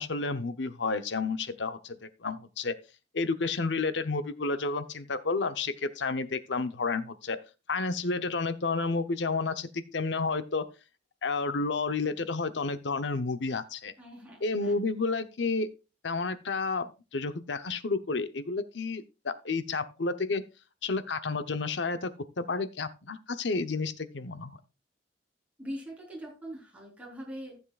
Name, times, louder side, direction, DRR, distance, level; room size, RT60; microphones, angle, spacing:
voice 1, 0.0-2.7 3.1-7.4 7.7-10.6 11.2-13.9 14.4-15.7 16.0-20.4 20.8-22.1 22.4-24.6, left 3 dB, 75° left, 12 dB, 0.8 m, -31 dB
voice 2, 14.0-14.8 25.6-27.6, equal, 10° right, -3 dB, 4.0 m, -42 dB
15.0 x 7.3 x 2.4 m, 0.30 s
head